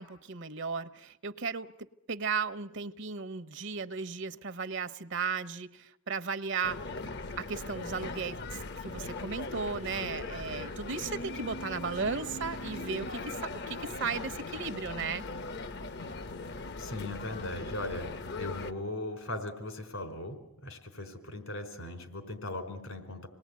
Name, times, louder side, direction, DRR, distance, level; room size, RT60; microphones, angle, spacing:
voice 1, 0.0-1.7 2.1-6.9 7.4-15.2, right 5 dB, 60° right, 13 dB, 0.9 m, -35 dB
sound 1, 6.6-18.7, left 3 dB, 55° left, 0.9 m, -39 dB
voice 2, 16.8-18.1 18.4-23.3, left 2 dB, 80° left, 7 dB, 4.5 m, -38 dB
27.0 x 19.5 x 9.5 m, 0.84 s
head